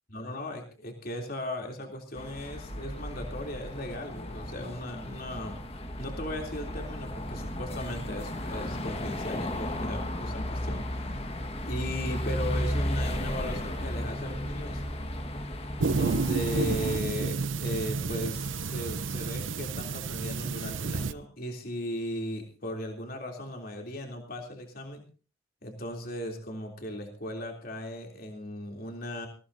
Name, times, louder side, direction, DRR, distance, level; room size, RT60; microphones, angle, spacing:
voice 1, 0.1-5.7 6.0-11.1 11.6-14.8 15.9-25.0 25.6-29.3, equal, 50° left, 2 dB, 3.2 m, -37 dB
sound 1, 2.2-17.0, left 1 dB, 30° left, 1.6 m, -34 dB
sound 2, 15.8-21.1, right 4 dB, 80° right, 0.7 m, -30 dB
21.5 x 16.5 x 2.8 m, 0.36 s
head